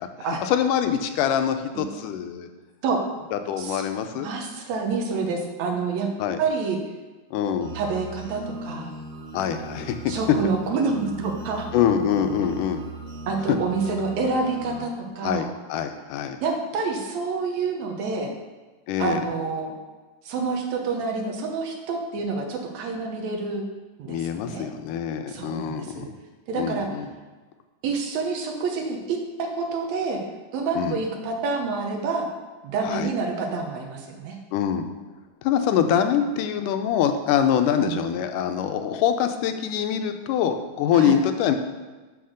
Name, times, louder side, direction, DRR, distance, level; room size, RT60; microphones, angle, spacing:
voice 1, 0.4-2.5 3.3-4.3 6.2-6.4 7.3-7.8 9.3-10.0 11.7-12.8 15.2-16.4 18.9-19.2 24.1-26.1 26.6-27.1 30.8-31.0 32.8-33.1 34.5-34.9 35.4-41.5, left 8 dB, 90° left, 7 dB, 2.2 m, -24 dB
voice 2, 4.2-6.1 6.4-6.8 7.7-8.9 10.1-11.7 13.3-15.5 16.4-18.3 19.0-19.7 20.3-23.6 24.0-24.7 25.3-26.1 26.5-26.9 27.8-30.2 30.5-32.3 32.6-34.4 37.8-38.0 40.9-41.2, right 4 dB, 70° right, 2 dB, 2.0 m, -28 dB
sound 1, 7.6-14.8, right 2 dB, 50° right, 1.4 m, -38 dB
6.2 x 5.7 x 6.4 m, 1.3 s
omnidirectional pair, 3.6 m